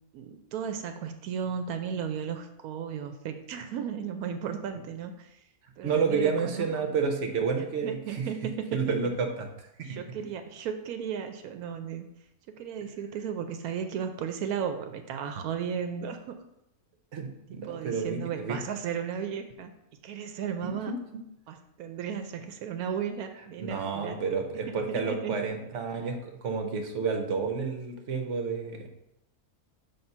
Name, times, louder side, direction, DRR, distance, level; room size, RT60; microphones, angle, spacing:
voice 1, 0.1-5.3 5.8-6.9 7.8-8.9 9.9-12.1 12.6-16.3 17.6-19.7 20.0-20.9 21.5-24.2 24.7-25.3, right 7 dB, 85° right, 6 dB, 1.1 m, -35 dB
voice 2, 5.8-8.3 8.7-10.0 17.1-18.6 20.6-21.0 23.6-28.9, right 5 dB, 60° right, 5 dB, 1.1 m, -30 dB
5.9 x 3.6 x 5.4 m, 0.84 s
omnidirectional pair, 1.5 m